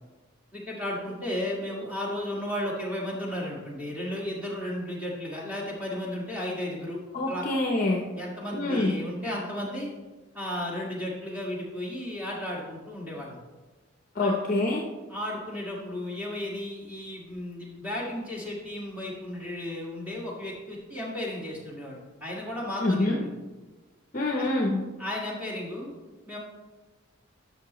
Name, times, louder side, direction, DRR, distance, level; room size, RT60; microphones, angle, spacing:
voice 1, 0.5-7.0 7.3-7.5 8.2-9.9 10.3-13.4 14.2-14.4 15.1-23.3 24.3-24.5 25.0-25.9 26.3-26.4, left 1 dB, 5° right, -4 dB, 1.7 m, -34 dB
voice 2, 7.1-8.0 8.5-9.0 14.1-14.8 22.8-23.2 24.1-24.8, left 2 dB, 40° left, 0 dB, 0.7 m, -26 dB
11.5 x 6.3 x 3.0 m, 1.2 s
head